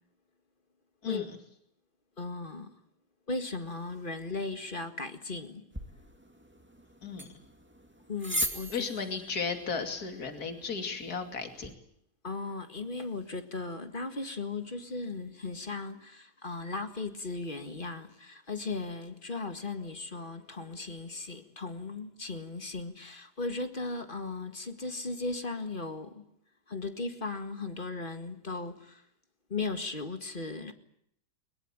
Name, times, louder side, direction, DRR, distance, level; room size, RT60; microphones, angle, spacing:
voice 1, 2.2-2.8 3.3-5.7 8.1-8.8 12.2-26.2 26.7-29.0 29.5-30.7, left 3 dB, 30° left, 2.0 m, -37 dB
sound 1, 5.7-11.7, equal, 5° right, 2.3 m, -40 dB
voice 2, 8.7-11.7, left 5 dB, 65° left, 3.1 m, -35 dB
22.5 x 21.5 x 8.8 m
omnidirectional pair, 1.8 m